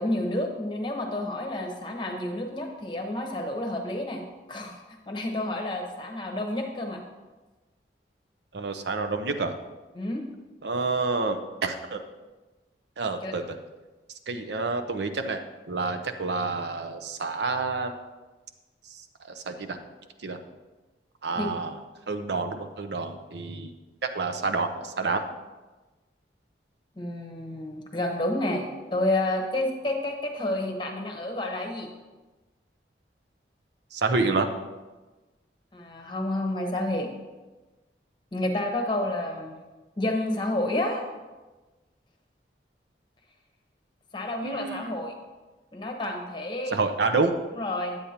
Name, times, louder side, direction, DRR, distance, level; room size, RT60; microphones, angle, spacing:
voice 1, 0.0-4.2 4.5-4.8 5.1-7.0 10.0-10.2 13.2-13.3 21.3-21.5 27.0-31.9 35.7-37.1 38.3-39.6 40.0-41.1 44.1-45.1 45.7-46.8 47.6-48.0, left 1 dB, 25° left, 2 dB, 0.9 m, -30 dB
voice 2, 8.5-9.6 10.6-12.0 13.0-13.6 14.3-15.4 15.7-17.9 18.9-19.8 20.2-20.4 21.2-21.8 22.1-23.7 24.0-25.2 33.9-34.5 44.4-45.0 46.7-47.4, right 3 dB, 70° right, 7 dB, 0.6 m, -28 dB
10.0 x 7.9 x 2.9 m, 1.2 s
head